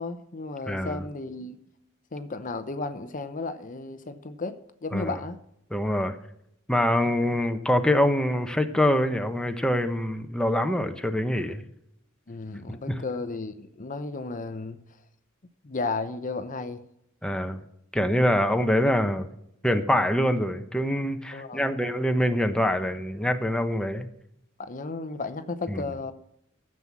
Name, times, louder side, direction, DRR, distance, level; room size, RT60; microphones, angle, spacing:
voice 1, 0.0-1.6 2.1-5.4 12.3-14.8 15.6-16.8 21.3-21.7 24.6-26.1, left 3 dB, 40° left, 10 dB, 0.8 m, -34 dB
voice 2, 0.7-1.0 4.9-5.2 5.7-6.1 6.7-11.6 12.9-13.0 17.2-17.6 17.9-19.3 19.6-24.1 25.7-25.8, left 1 dB, 5° left, 6 dB, 1.0 m, -25 dB
13.5 x 7.7 x 7.2 m, 0.75 s
head